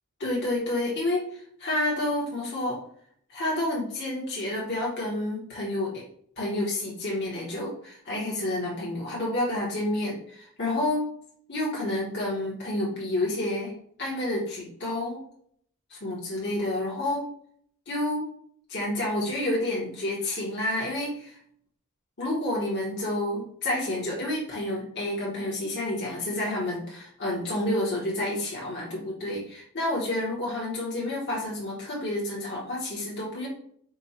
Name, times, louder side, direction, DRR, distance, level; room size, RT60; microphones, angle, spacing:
voice 1, 0.2-2.8 3.3-6.0 6.4-11.1 11.5-13.7 14.0-15.2 15.9-17.3 17.9-18.3 18.7-21.4 22.2-33.5, left 1 dB, 50° left, -5 dB, 1.2 m, -29 dB
5.2 x 2.3 x 4.2 m, 0.64 s
head